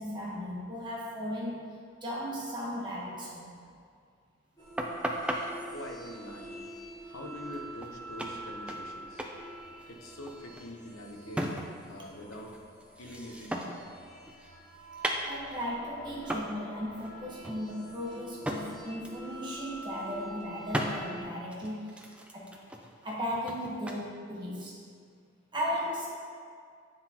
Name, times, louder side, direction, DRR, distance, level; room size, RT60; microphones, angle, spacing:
voice 1, 0.0-1.6 2.0-3.6 15.2-22.0 22.3-22.5 23.0-24.8 25.5-26.1, equal, 20° right, -5 dB, 1.1 m, -36 dB
sound 1, 4.6-21.2, right 1 dB, 20° left, 1.0 m, -46 dB
sound 2, 4.8-5.4 7.5-7.6 7.8-8.9 9.2-9.4 9.7-11.9 12.2-13.9 14.2-15.7 16.3-16.6 16.9-17.1 17.4-18.7 19.0-19.3 19.6-20.1 20.7-20.9 21.5-24.0, right 1 dB, 5° right, 0.3 m, -36 dB
voice 2, 5.7-6.7 7.1-9.2 9.9-11.5 11.8-12.6 13.0-13.8, left 1 dB, 80° left, 2 dB, 0.7 m, -44 dB
9.3 x 3.9 x 2.8 m, 2.2 s
head